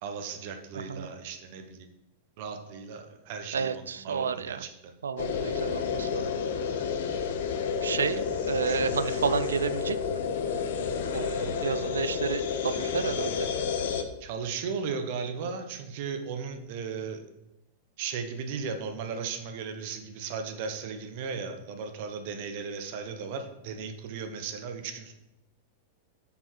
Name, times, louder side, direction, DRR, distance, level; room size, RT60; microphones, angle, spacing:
voice 1, 0.0-1.9 2.4-4.9 8.0-8.2 8.6-9.2 11.3-11.5 14.2-17.2 18.0-25.1, right 5 dB, 55° right, 6 dB, 1.0 m, -36 dB
voice 2, 0.7-1.1 3.5-4.6 5.0-6.3 7.8-8.2 8.5-10.2 11.1-11.3 11.6-13.5, right 6 dB, 80° right, 15 dB, 0.4 m, -31 dB
sound 1, 5.2-14.0, left 6 dB, 65° left, 0.8 m, -30 dB
6.9 x 4.6 x 4.6 m, 0.91 s
figure-of-eight pair, 95°, 0 cm